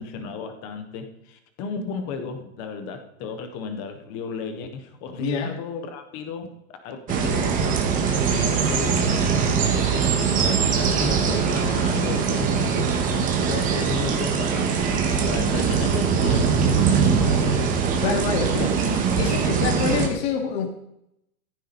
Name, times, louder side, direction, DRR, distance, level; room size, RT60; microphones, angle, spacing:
voice 1, 0.0-6.5 6.8-14.9 15.2-17.9, left 5 dB, 10° left, 7 dB, 0.4 m, -34 dB
voice 2, 5.2-5.5 18.0-20.7, left 6 dB, 45° left, 1 dB, 2.5 m, -26 dB
sound 1, 7.1-20.1, right 6 dB, 20° right, 1.5 m, -22 dB
14.5 x 14.5 x 4.1 m, 0.78 s
hypercardioid pair, 160°, 44 cm